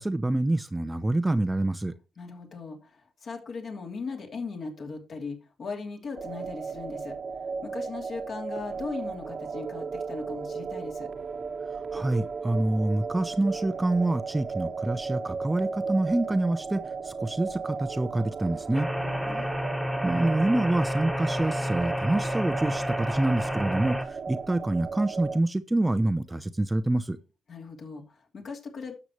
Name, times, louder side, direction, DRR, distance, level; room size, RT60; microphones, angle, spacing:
voice 1, 0.0-1.9 11.9-18.9 20.0-27.2, right 2 dB, 15° right, 0.6 m, -26 dB
voice 2, 2.2-7.1 7.6-11.1 19.0-19.5 27.5-28.9, left 4 dB, 55° left, 2.9 m, -38 dB
sound 1, 6.1-25.4, right 5 dB, 45° right, 1.2 m, -35 dB
sound 2, 18.7-24.0, equal, 5° left, 1.5 m, -30 dB
12.0 x 7.1 x 3.1 m
cardioid pair, 90°, 0 cm